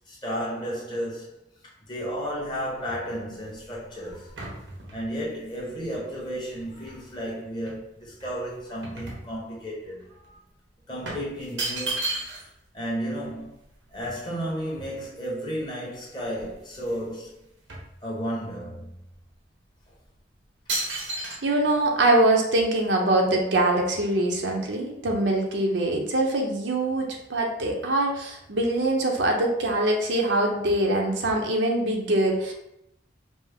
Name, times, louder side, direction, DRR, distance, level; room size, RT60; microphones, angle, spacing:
voice 1, 0.1-1.4 1.6-4.4 4.9-10.4 10.9-12.2 12.7-13.5 13.9-17.4 18.0-18.9, equal, 25° left, 1.1 m, -33 dB
sound 1, 2.3-7.2 7.7-9.8 10.1-10.3 11.0-12.6 12.9-13.0 13.2-15.4 15.9-16.0 16.3-17.1 17.3-18.6 19.1-19.3 19.9-20.2 20.7-21.4, right 2 dB, 90° right, 1.1 m, -35 dB
voice 2, 21.4-32.5, right 1 dB, 75° right, 0.8 m, -23 dB
5.2 x 2.1 x 3.5 m
head